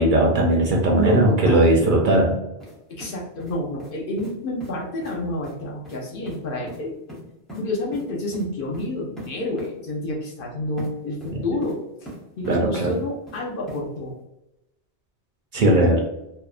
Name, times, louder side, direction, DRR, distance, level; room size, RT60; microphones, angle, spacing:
voice 1, 0.0-2.4 12.5-12.9 15.5-16.0, right 1 dB, 60° right, -1 dB, 0.6 m, -18 dB
voice 2, 1.0-1.9 2.9-7.0 7.5-12.1 12.4-14.1 15.7-16.0, left 1 dB, 60° left, -2 dB, 0.7 m, -29 dB
sound 1, 2.6-2.8 3.0-3.9 4.2-4.3 4.6-4.7 5.0-5.2 5.4-5.6 5.8-6.0 6.3-6.4 6.7-6.8 7.1-7.6 7.9-8.1 8.3-8.5 8.7-8.9 9.2-9.3 9.6-9.7 10.8-10.9 11.2-11.8 12.1-12.6 12.9-13.4 13.7-13.8, right 1 dB, ahead, 0.5 m, -39 dB
2.7 x 2.1 x 2.3 m, 0.90 s
omnidirectional pair, 1.1 m